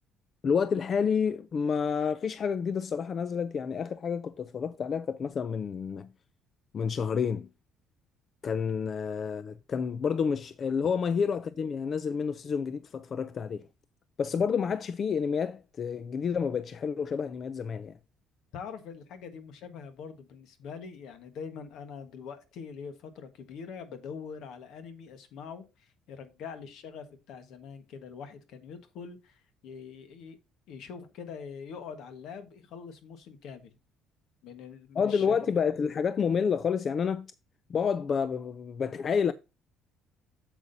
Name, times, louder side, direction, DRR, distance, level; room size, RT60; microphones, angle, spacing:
voice 1, 0.4-6.1 6.7-7.5 8.4-13.7 14.2-18.0 35.0-37.3 37.7-39.3, left 6 dB, 35° left, 0.4 m, -29 dB
voice 2, 18.5-30.4 30.7-33.7 34.4-35.5, left 6 dB, 65° left, 1.4 m, -44 dB
8.2 x 7.3 x 2.7 m
cardioid pair, 145°, 0 cm